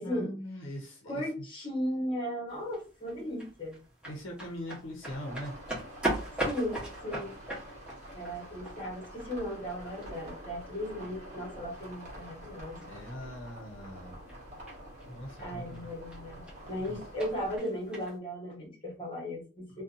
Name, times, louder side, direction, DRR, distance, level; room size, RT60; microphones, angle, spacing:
voice 1, 0.0-1.2 4.1-5.5 12.8-14.2 15.0-15.9 16.8-17.0 19.7-19.8, equal, 65° left, 1 dB, 0.7 m, -41 dB
voice 2, 1.1-3.8 6.4-7.3 8.1-12.8 15.4-19.8, equal, 25° left, -2 dB, 1.1 m, -36 dB
sound 1, 2.5-18.2, right 1 dB, 5° right, 1.0 m, -42 dB
sound 2, 5.1-17.6, equal, 40° right, 1.2 m, -47 dB
2.6 x 2.2 x 2.5 m, 0.35 s
head